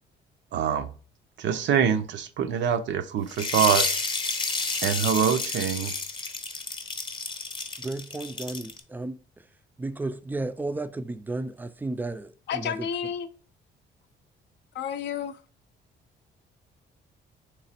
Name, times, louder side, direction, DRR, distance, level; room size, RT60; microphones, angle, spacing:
voice 1, 0.5-0.9 1.4-3.9 4.8-5.9, right 8 dB, 70° right, 0.5 m, -24 dB
sound 1, 3.3-8.8, left 3 dB, 25° left, 0.7 m, -30 dB
voice 2, 7.8-9.4 9.8-12.9, right 2 dB, 10° right, 0.3 m, -33 dB
voice 3, 12.5-13.3 14.7-15.4, left 8 dB, 60° left, 0.5 m, -31 dB
3.3 x 3.1 x 4.2 m
cardioid pair, 90°, 20 cm